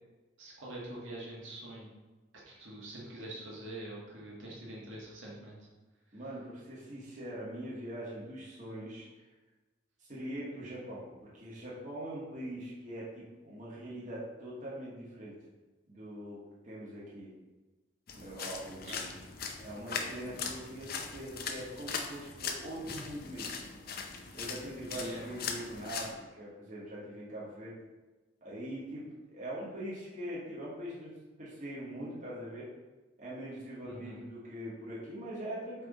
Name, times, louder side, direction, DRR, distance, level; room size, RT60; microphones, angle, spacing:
voice 1, 0.4-1.9 2.5-5.6 18.8-18.9 24.9-25.2 33.8-34.2, right 1 dB, 80° right, -4 dB, 1.7 m, -44 dB
voice 2, 6.1-9.1 10.0-11.1 11.3-15.3 15.9-17.3 18.1-19.2 19.6-23.5 24.3-27.7 28.4-31.1 31.4-32.7 33.2-35.9, right 1 dB, 40° right, -7 dB, 1.8 m, -42 dB
sound 1, 18.1-26.1, left 5 dB, 50° left, 0.6 m, -40 dB
7.8 x 3.5 x 4.1 m, 1.2 s
head